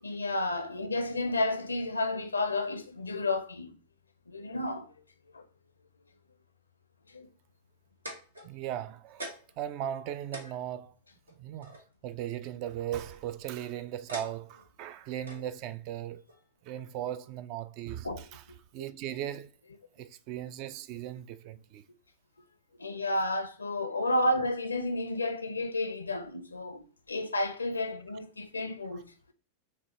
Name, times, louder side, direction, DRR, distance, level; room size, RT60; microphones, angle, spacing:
voice 1, 0.0-3.7 4.3-4.9 5.3-5.4 7.1-7.3 18.0-18.2 22.8-29.1, left 2 dB, 80° left, 0.5 m, -31 dB
sound 1, 7.7-8.8 9.2-9.6 10.0-10.1 10.3-11.8 12.9-13.3 14.1-14.7 15.3-15.5 16.3-16.4, right 1 dB, 80° right, 0.9 m, -43 dB
voice 2, 8.4-10.9 11.4-16.2 16.6-18.4 18.7-19.5 20.0-21.8, right 11 dB, 45° right, 0.3 m, -38 dB
5.9 x 2.3 x 2.8 m
figure-of-eight pair, 90°, 0 cm